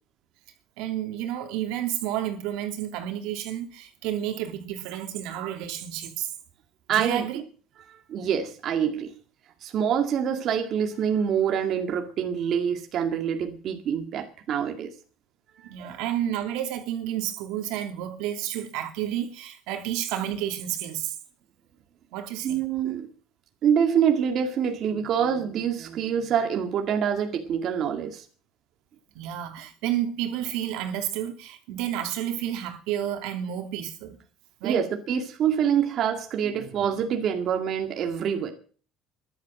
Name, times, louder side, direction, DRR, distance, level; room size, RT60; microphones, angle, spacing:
voice 1, 0.8-6.3 6.9-7.4 15.6-21.2 22.1-22.6 29.1-34.2 34.6-34.8, right 11 dB, 80° right, 2.9 m, -31 dB
voice 2, 6.9-7.3 7.9-9.1 9.6-14.9 15.6-16.0 22.4-23.1 23.6-28.2 34.6-38.5, right 8 dB, 45° right, 2.1 m, -26 dB
14.0 x 11.5 x 7.7 m
cardioid pair, 150°, 0 cm